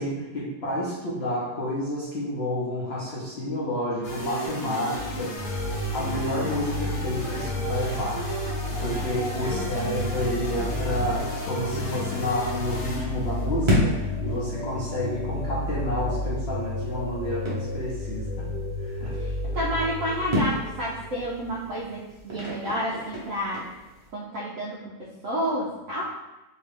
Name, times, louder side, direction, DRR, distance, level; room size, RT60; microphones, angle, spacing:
voice 1, 0.0-5.4 5.9-8.3 8.8-18.5 18.8-19.1, left 1 dB, 90° left, -7 dB, 0.5 m, -30 dB
sound 1, 4.0-13.7, right 1 dB, 60° left, 1.1 m, -34 dB
sound 2, 5.4-21.7, left 2 dB, 35° left, 1.0 m, -32 dB
voice 2, 9.3-10.0 19.1-23.8 24.1-26.2, equal, 80° right, -6 dB, 0.7 m, -30 dB
sound 3, 11.4-24.1, left 1 dB, 30° right, 0.5 m, -33 dB
2.8 x 2.6 x 3.5 m, 1.0 s
omnidirectional pair, 1.9 m